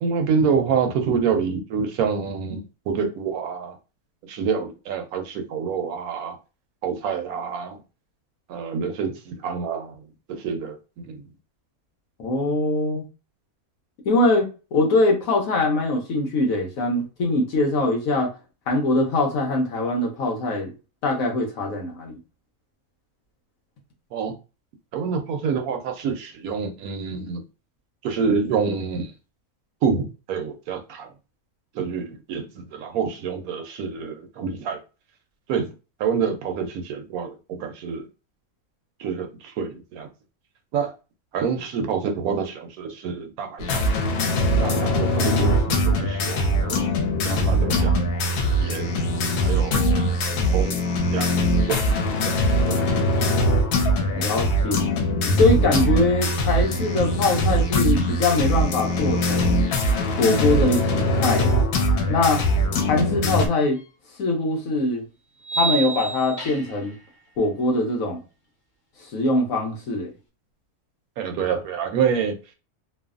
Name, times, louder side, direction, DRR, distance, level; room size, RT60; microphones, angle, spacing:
voice 1, 0.0-3.8 4.3-6.4 6.8-7.8 8.5-10.0 10.3-11.2 24.1-24.3 24.9-27.4 28.0-29.1 29.8-31.1 31.7-34.8 35.5-35.7 36.0-38.1 39.0-40.1 40.7-40.9 41.3-43.9 44.6-46.9 47.3-47.9 48.6-48.9 49.4-50.2 50.5-50.9 51.1-51.4 51.6-51.8 52.3-53.3 54.2-54.3 71.2-72.4, right 6 dB, 75° right, 1.0 m, -27 dB
voice 2, 12.2-13.1 14.0-18.3 18.7-20.7 21.0-22.2 54.1-54.9 55.4-59.6 60.2-61.6 62.1-62.4 62.9-63.8 64.2-65.0 65.6-66.9 67.4-68.2 69.0-70.1, left 2 dB, 65° left, 1.2 m, -22 dB
sound 1, 43.6-63.5, equal, 90° left, 1.1 m, -22 dB
sound 2, 63.8-63.9 65.4-66.9, right 5 dB, 35° left, 0.6 m, -28 dB
3.1 x 2.1 x 2.4 m
omnidirectional pair, 1.6 m